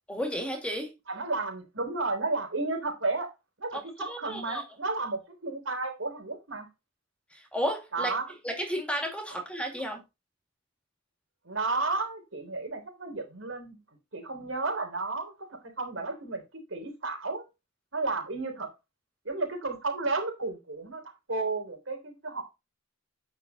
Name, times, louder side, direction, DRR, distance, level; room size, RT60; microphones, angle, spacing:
voice 1, 0.1-0.9 3.7-4.6 7.3-8.1 8.4-10.0, equal, 5° left, 2.0 m, -33 dB
voice 2, 1.1-3.3 3.6-6.7 7.9-8.3 9.3-9.4 11.4-13.8 14.1-17.4 17.9-18.7 19.2-22.4, right 3 dB, 90° right, 3.5 m, -32 dB
9.3 x 5.9 x 3.9 m
head